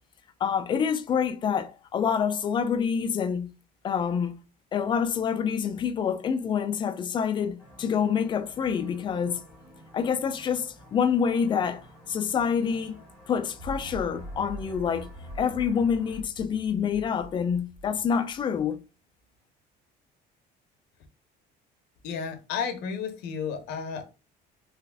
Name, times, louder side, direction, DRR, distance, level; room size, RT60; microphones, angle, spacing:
voice 1, 0.4-3.5 3.8-4.4 4.7-9.4 9.9-15.1 15.4-18.8, left 7 dB, 30° left, 0.4 m, -27 dB
sound 1, 7.6-16.2, equal, 5° left, 1.5 m, -52 dB
sound 2, 13.6-18.6, right 1 dB, 65° right, 1.6 m, -43 dB
voice 2, 22.0-24.0, left 6 dB, 80° left, 0.9 m, -32 dB
3.4 x 2.4 x 3.4 m
cardioid pair, 165°, 17 cm